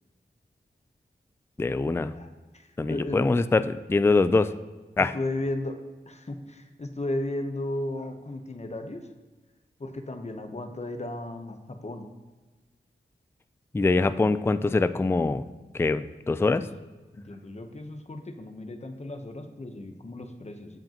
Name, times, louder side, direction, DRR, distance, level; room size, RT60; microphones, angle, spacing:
voice 1, 1.6-2.1 2.8-4.5 5.0-5.1 13.7-15.4 15.7-16.7, left 3 dB, 15° left, 13 dB, 0.3 m, -23 dB
voice 2, 2.1-3.2 4.3-4.4 5.0-5.8 6.1-9.1 9.8-12.1 16.6-16.7 17.1-20.8, left 1 dB, 40° left, 6 dB, 0.9 m, -35 dB
15.0 x 5.1 x 2.9 m, 1.3 s
cardioid pair, 55°, 18 cm